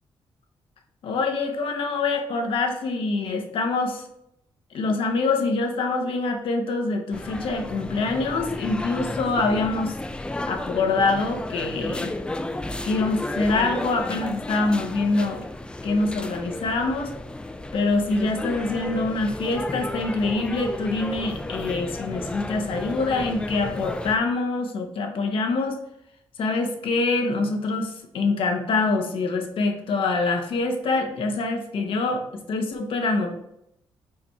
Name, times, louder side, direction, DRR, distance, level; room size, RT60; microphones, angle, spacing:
voice 1, 1.0-4.0 4.7-9.9 10.5-12.1 12.8-15.4 15.8-17.1 17.7-25.8 26.4-33.3, left 3 dB, 70° left, 4 dB, 0.9 m, -25 dB
sound 1, 7.1-24.2, left 1 dB, 10° left, 0.3 m, -33 dB
4.8 x 4.2 x 4.6 m, 0.77 s
wide cardioid pair, 160°, 10 cm